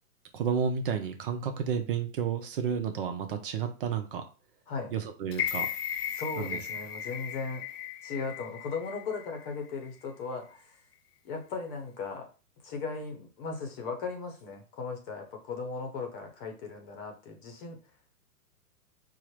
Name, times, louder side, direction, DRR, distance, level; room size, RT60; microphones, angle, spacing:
voice 1, 0.3-4.3 4.9-5.7 6.4-6.6, right 7 dB, 40° right, 6 dB, 0.5 m, -31 dB
sound 1, 5.3-9.4 9.8-9.9, left 9 dB, 85° left, 0.6 m, -36 dB
voice 2, 6.1-7.6 8.0-10.8 11.2-12.3 12.6-17.8, left 4 dB, 35° left, 4 dB, 0.8 m, -37 dB
4.4 x 2.0 x 3.1 m, 0.35 s
hypercardioid pair, 135°, 46 cm